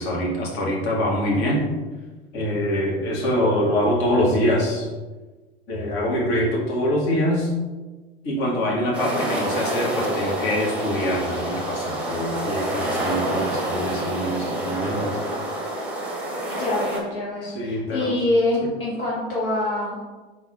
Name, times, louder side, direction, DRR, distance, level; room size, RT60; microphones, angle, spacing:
voice 1, 0.0-1.6 2.3-4.9 5.7-7.5 8.2-15.2 17.4-18.1, equal, 45° left, -3 dB, 1.4 m, -24 dB
Sound of waves on the Black Sea coast., 8.9-17.0, right 1 dB, 5° right, 0.9 m, -27 dB
voice 2, 16.5-20.0, left 2 dB, 60° left, -5 dB, 1.1 m, -25 dB
3.8 x 2.9 x 4.6 m, 1.3 s
figure-of-eight pair, 80°, 30 cm